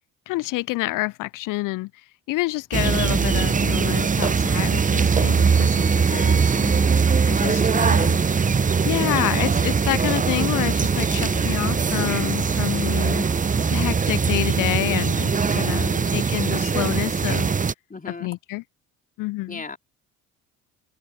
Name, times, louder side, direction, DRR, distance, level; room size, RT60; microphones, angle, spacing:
voice 1, 0.3-6.8 7.3-8.2 8.8-13.2 13.7-17.5 18.2-18.6 19.2-19.6, left 20 dB, 50° left, 0.5 m, -28 dB
sound 1, 2.7-17.7, right 5 dB, 20° right, 0.8 m, -21 dB
sound 2, 3.2-13.8, left 1 dB, 5° left, 1.8 m, -41 dB
voice 2, 6.7-8.2 11.0-11.5 15.4-16.2 17.9-18.3 19.5-19.8, left 3 dB, 20° left, 3.4 m, -37 dB
hypercardioid pair, 55°, 43 cm